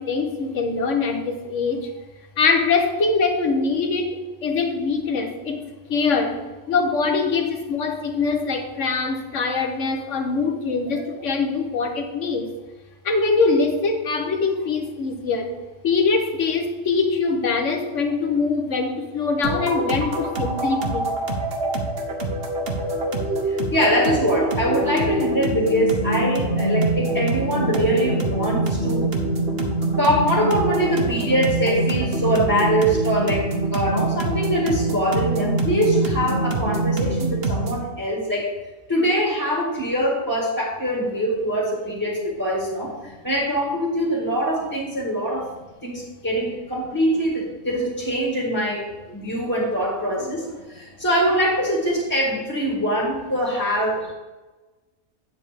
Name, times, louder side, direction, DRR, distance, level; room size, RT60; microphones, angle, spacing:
voice 1, 0.0-1.9 2.4-6.4 6.7-12.5 13.0-15.6 15.8-21.1, left 4 dB, 65° left, 4 dB, 1.4 m, -23 dB
sound 1, 19.4-37.9, right 2 dB, 50° right, 1.2 m, -24 dB
voice 2, 23.4-29.1 29.4-38.5 38.9-45.5 45.8-54.1, equal, 15° left, -5 dB, 2.0 m, -23 dB
9.0 x 7.5 x 3.6 m, 1.2 s
omnidirectional pair, 1.4 m